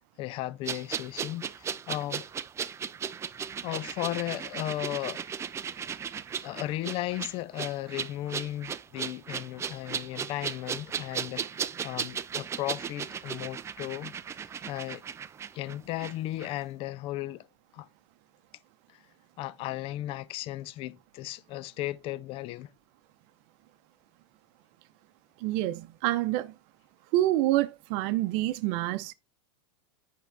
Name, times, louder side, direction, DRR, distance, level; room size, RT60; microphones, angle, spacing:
voice 1, 0.2-2.3 3.6-5.2 6.4-14.1 14.7-15.0 15.5-17.5 17.7-17.9 18.9-19.0 19.4-22.7, left 15 dB, 40° left, 0.4 m, -35 dB
sound 1, 0.6-16.1 16.4-16.5, right 7 dB, 20° right, 0.4 m, -36 dB
voice 2, 25.4-26.5 27.1-29.1, right 15 dB, 55° right, 0.7 m, -27 dB
9.9 x 3.7 x 3.3 m
hypercardioid pair, 115°, 15 cm